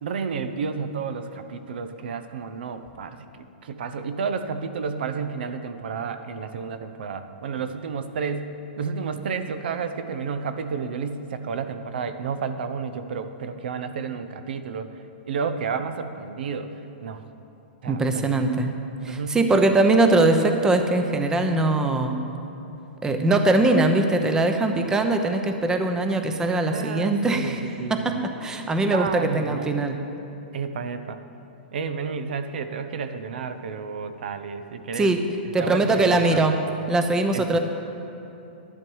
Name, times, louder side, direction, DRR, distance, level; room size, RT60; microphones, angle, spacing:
voice 1, 0.0-8.5 8.8-14.9 15.3-16.7 17.0-17.2 17.8-18.3 19.1-19.4 26.6-28.3 28.9-29.7 30.5-31.2 31.7-35.1 35.6-36.8 37.3-37.6, right 5 dB, 70° right, 9 dB, 0.8 m, -31 dB
voice 2, 17.9-18.7 19.0-22.1 23.0-27.6 27.9-30.0 35.0-35.2 35.5-36.6 36.9-37.6, right 2 dB, 10° right, 6 dB, 0.7 m, -21 dB
12.0 x 11.0 x 4.7 m, 2.9 s
hypercardioid pair, 140°, 6 cm